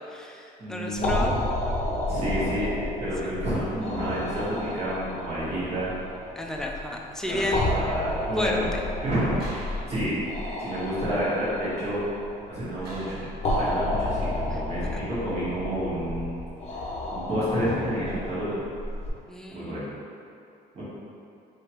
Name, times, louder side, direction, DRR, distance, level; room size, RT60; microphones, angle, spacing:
voice 1, 0.1-1.3 3.2-3.3 6.4-7.9 8.4-8.8 14.5-14.6 14.9-15.0 19.3-20.0, left 1 dB, 5° left, 0 dB, 0.3 m, -32 dB
voice 2, 0.6-1.3 2.1-5.9 7.3-8.6 9.0-10.2 10.6-12.0 12.5-16.3 17.1-18.5 19.5-19.9 20.7-20.8, equal, 40° right, -10 dB, 1.4 m, -30 dB
sound 1, 0.9-19.1, left 1 dB, 40° left, 0.6 m, -31 dB
sound 2, 9.4-10.6 12.8-13.6, right 1 dB, 65° right, 1.3 m, -43 dB
3.3 x 2.9 x 2.9 m, 2.6 s
cardioid pair, 110°, 17 cm